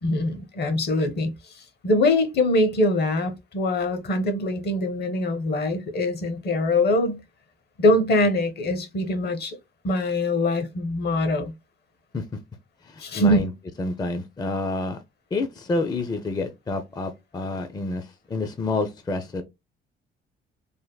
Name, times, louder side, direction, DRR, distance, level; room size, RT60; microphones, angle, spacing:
voice 1, 0.0-7.2 7.8-9.6 9.8-11.5 13.0-13.4, left 1 dB, 55° left, 0.7 m, -23 dB
voice 2, 12.8-13.5 13.8-15.0 15.3-19.4, left 3 dB, 20° left, 0.4 m, -28 dB
3.3 x 2.1 x 2.2 m
cardioid pair, 90°, 20 cm